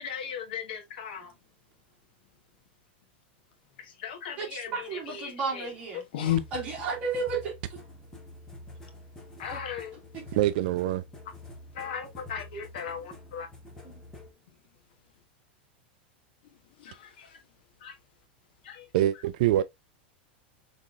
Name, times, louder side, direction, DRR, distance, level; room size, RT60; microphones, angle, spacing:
voice 1, 0.0-1.3 4.0-5.7 5.9-6.4 9.4-9.9 11.8-13.5 16.8-17.3 17.8-17.9 18.6-18.8, left 9 dB, 65° left, 1.4 m, -35 dB
voice 2, 4.4-6.0 6.5-7.5 9.5-9.6 10.1-10.2, right 4 dB, 25° right, 2.3 m, -33 dB
sound 1, 6.3-14.3, left 2 dB, 10° left, 0.9 m, -47 dB
voice 3, 10.4-11.0 18.9-19.6, right 13 dB, 50° right, 0.4 m, -24 dB
5.8 x 3.6 x 2.5 m
supercardioid pair, 175°, 6 cm